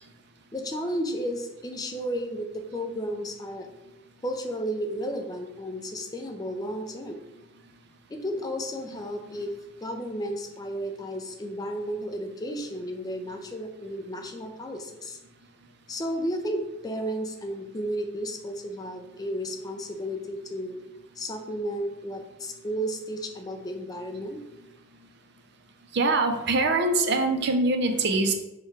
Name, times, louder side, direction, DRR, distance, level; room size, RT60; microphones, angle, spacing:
voice 1, 0.5-3.7 4.2-7.2 8.1-9.5 9.8-15.2 15.9-20.8 21.2-24.4, equal, 15° left, 4 dB, 0.4 m, -33 dB
voice 2, 25.9-28.3, right 2 dB, 50° right, 6 dB, 0.5 m, -23 dB
4.5 x 2.3 x 4.6 m, 0.98 s
head